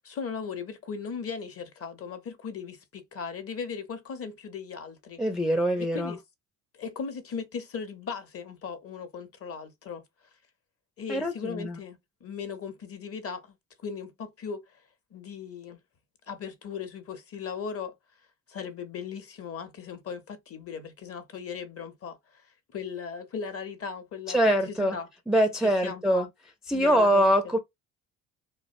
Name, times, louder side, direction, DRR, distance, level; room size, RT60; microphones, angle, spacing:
voice 1, 0.0-5.2 5.8-6.2 6.7-10.0 11.0-14.8 15.1-15.8 16.3-17.9 18.5-24.4 24.7-25.1 25.6-26.3 26.7-27.3, left 6 dB, 35° left, 0.7 m, -38 dB
voice 2, 5.2-6.2 11.1-11.8 24.3-25.0 25.3-26.3 26.7-27.6, equal, ahead, 0.4 m, -24 dB
2.5 x 2.1 x 2.4 m
hypercardioid pair, 65°, 41 cm